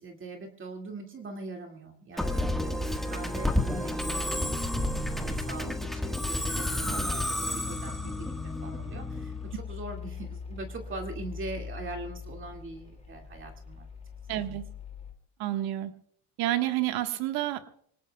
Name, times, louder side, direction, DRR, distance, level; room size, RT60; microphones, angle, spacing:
voice 1, 0.0-13.9 14.3-14.6, right 3 dB, 30° right, 2 dB, 2.2 m, -42 dB
Musical instrument, 2.2-9.5, left 1 dB, ahead, 1.5 m, -31 dB
Mechanical fan, 4.3-15.1, left 6 dB, 15° left, 2.5 m, -42 dB
voice 2, 14.3-14.7 15.4-15.9 16.4-17.7, right 14 dB, 60° right, 7 dB, 1.5 m, -29 dB
25.0 x 18.5 x 2.3 m, 0.64 s
supercardioid pair, 115°, 41 cm